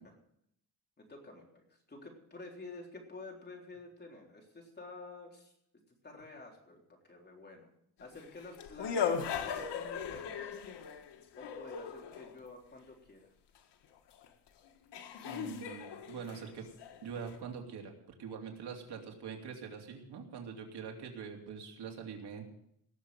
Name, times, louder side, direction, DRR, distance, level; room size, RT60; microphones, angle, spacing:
voice 1, 1.0-5.5 6.0-7.7 8.0-10.5 11.4-13.3, left 3 dB, 25° left, 0 dB, 3.8 m, -50 dB
sound 1, 8.1-12.4 14.2-14.3 14.9-17.4, left 7 dB, 85° left, 1.6 m, -38 dB
voice 2, 15.2-16.7 17.0-17.9 18.2-22.4, right 6 dB, 75° right, 2 dB, 2.8 m, -44 dB
18.5 x 7.2 x 7.8 m, 0.74 s
cardioid pair, 135°, 40 cm